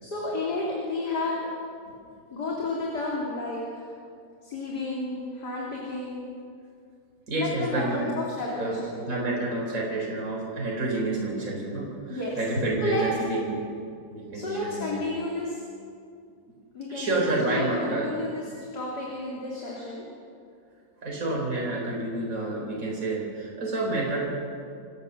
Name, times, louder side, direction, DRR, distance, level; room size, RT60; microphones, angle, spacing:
voice 1, 0.0-1.5 2.3-3.9 4.4-6.3 7.4-9.0 12.1-12.4 12.8-13.0 14.3-15.6 16.7-20.0, left 2 dB, 50° left, -4 dB, 3.6 m, -31 dB
voice 2, 7.3-8.0 8.6-13.7 14.1-15.0 16.9-18.1 21.0-24.2, right 2 dB, 40° right, -3 dB, 4.7 m, -29 dB
27.5 x 15.0 x 6.8 m, 2.3 s
omnidirectional pair, 2.2 m